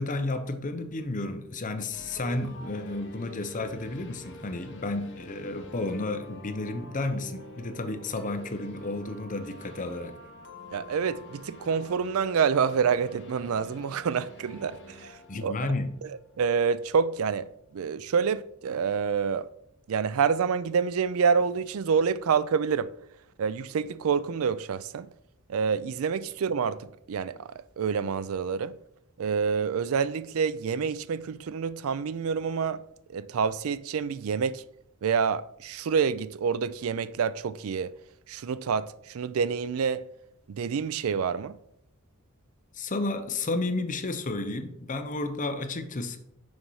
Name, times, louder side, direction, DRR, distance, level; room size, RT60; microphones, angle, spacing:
voice 1, 0.0-10.1 15.3-15.9 42.7-46.2, left 2 dB, 35° left, 0.8 m, -32 dB
sound 1, 1.9-16.8, left 1 dB, 60° left, 1.1 m, -47 dB
voice 2, 10.7-15.7 16.0-19.5 19.9-22.9 23.4-25.1 25.5-28.8 29.2-32.8 33.1-34.6 35.0-37.9 38.3-40.0 40.5-41.6, right 6 dB, 70° right, 0.4 m, -27 dB
6.4 x 5.5 x 4.7 m
head